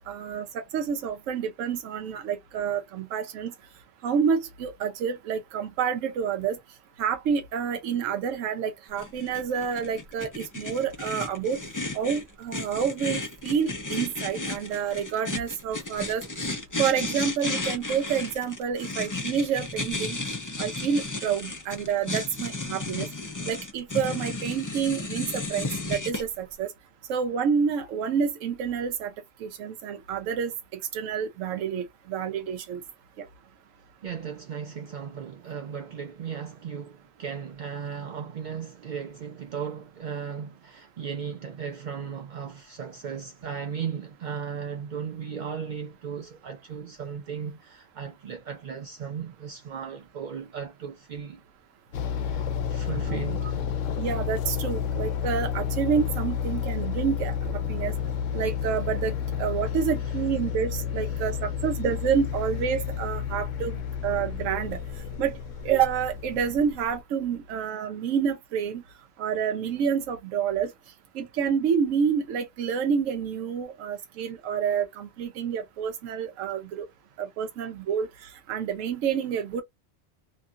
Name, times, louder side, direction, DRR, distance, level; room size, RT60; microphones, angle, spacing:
voice 1, 0.0-3.5 4.0-6.6 7.0-11.6 11.9-16.2 16.8-20.2 20.6-23.1 23.5-26.7 27.1-29.1 29.4-30.5 30.9-32.8 33.2-33.3 53.1-53.3 54.0-57.9 58.3-63.8 64.0-64.8 65.2-65.4 65.6-68.8 69.2-70.7 71.1-76.9 77.2-79.6, right 7 dB, 85° right, 1.0 m, -28 dB
sound 1, 9.0-26.2, left 2 dB, 25° left, 0.4 m, -33 dB
voice 2, 34.0-51.4 52.2-53.6 59.7-59.8 60.0-60.2 61.1-61.2, right 7 dB, 70° right, 0.4 m, -36 dB
sound 2, 51.9-67.0, left 8 dB, 80° left, 1.0 m, -31 dB
2.8 x 2.4 x 2.6 m
omnidirectional pair, 1.3 m